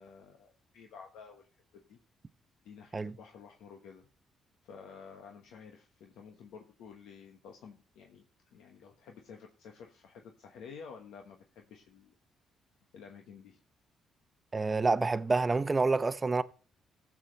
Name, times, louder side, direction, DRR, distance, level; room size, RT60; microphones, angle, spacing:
voice 1, 0.0-1.5 1.9-2.0 2.6-4.1 4.6-8.2 8.5-12.1 12.9-13.6, left 6 dB, 85° left, 1.2 m, -51 dB
voice 2, 14.5-16.4, right 3 dB, 25° right, 0.7 m, -28 dB
16.0 x 7.4 x 3.2 m
cardioid pair, 90°, 0 cm